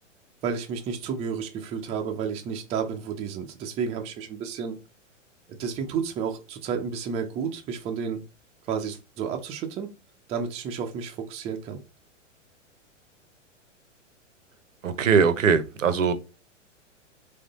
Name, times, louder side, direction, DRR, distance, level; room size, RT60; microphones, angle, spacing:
voice 1, 0.4-4.8 5.5-8.2 8.7-9.9 10.3-11.8, right 6 dB, 15° right, 0.5 m, -31 dB
voice 2, 14.8-16.1, right 6 dB, 80° right, 0.8 m, -21 dB
3.6 x 3.3 x 3.9 m
figure-of-eight pair, 105°, 38 cm